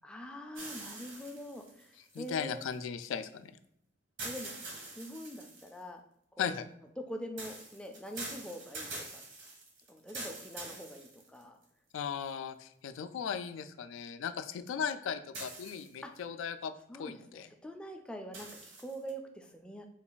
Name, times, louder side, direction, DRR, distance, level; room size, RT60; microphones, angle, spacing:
voice 1, 0.0-2.7 4.2-4.5 4.9-6.0 6.4-6.6 7.0-9.2 9.9-11.6 16.0-16.1 16.9-19.9, equal, 5° left, 4 dB, 0.3 m, -44 dB
sound 1, 0.5-2.7 4.2-5.8 7.4-11.6 12.3-12.4 15.3-16.2 18.3-19.1, right 2 dB, 70° right, 1.0 m, -45 dB
voice 2, 2.1-3.5 6.4-6.7 11.9-16.7 17.0-17.5, left 7 dB, 85° left, 10 dB, 0.3 m, -37 dB
3.8 x 2.3 x 3.9 m, 0.74 s
head